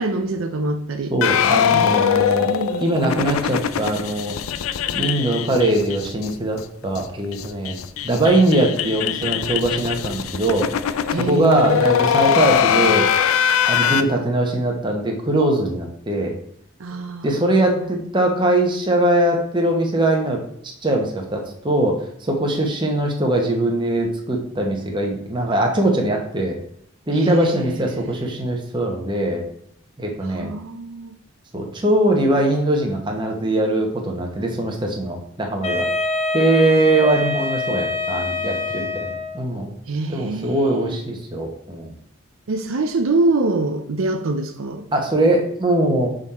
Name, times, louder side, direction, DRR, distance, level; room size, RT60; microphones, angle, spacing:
voice 1, 0.0-1.1 1.7-2.9 11.1-11.9 16.8-17.4 17.8-17.9 27.1-28.4 30.2-31.1 36.6-36.8 39.9-41.0 42.5-44.9, right 2 dB, 75° right, 7 dB, 0.6 m, -25 dB
voice 2, 1.1-2.5 2.8-4.4 4.9-7.8 8.0-10.7 11.2-13.0 13.6-16.3 17.2-20.4 20.8-26.6 27.1-29.4 30.0-30.5 31.5-35.9 36.3-39.7 40.1-41.9 44.9-46.1, right 1 dB, 20° right, 1 dB, 1.0 m, -21 dB
sound 1, 1.2-6.3 6.6-6.7 6.9-7.0 7.3-14.0, left 8 dB, 80° left, 0.4 m, -21 dB
Wind instrument woodwind instrument, 35.6-39.5, left 3 dB, 30° left, 0.7 m, -25 dB
6.2 x 3.8 x 4.2 m, 0.67 s
head